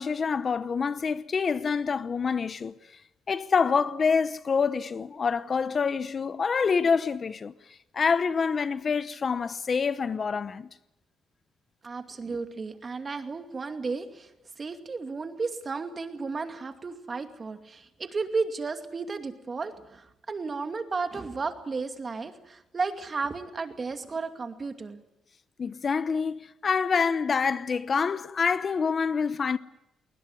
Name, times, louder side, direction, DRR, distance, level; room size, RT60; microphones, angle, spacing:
voice 1, 0.0-2.7 3.3-7.5 7.9-10.7 25.6-29.6, left 5 dB, 40° left, 0.9 m, -26 dB
voice 2, 11.8-25.0, right 4 dB, 35° right, 2.4 m, -33 dB
20.5 x 20.0 x 9.6 m
cardioid pair, 90°, 0 cm